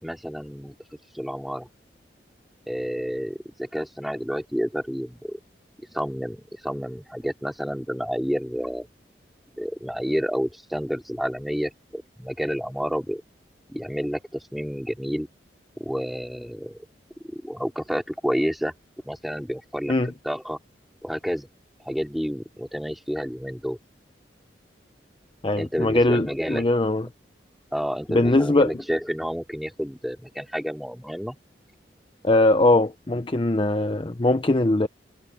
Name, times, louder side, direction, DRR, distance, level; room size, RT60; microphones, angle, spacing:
voice 1, 0.0-0.7 1.1-1.7 2.7-5.4 5.9-8.9 9.5-13.2 13.7-15.3 15.8-16.8 17.3-18.7 19.0-19.9 20.2-20.6 21.0-21.5 21.8-23.8 25.5-26.7 27.7-31.4, equal, ahead, 3.3 m, -29 dB
voice 2, 25.4-27.0 28.1-28.7 32.2-34.9, left 2 dB, 30° left, 0.7 m, -21 dB
head